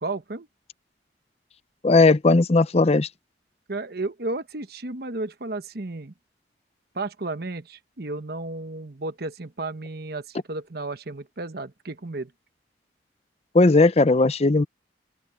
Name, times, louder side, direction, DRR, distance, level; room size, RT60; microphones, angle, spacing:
voice 1, 0.0-0.5 3.7-6.1 6.9-12.3, right 2 dB, 60° right, 1.1 m, -33 dB
voice 2, 1.8-3.1 13.5-14.7, left 3 dB, 35° left, 0.6 m, -17 dB
open air
head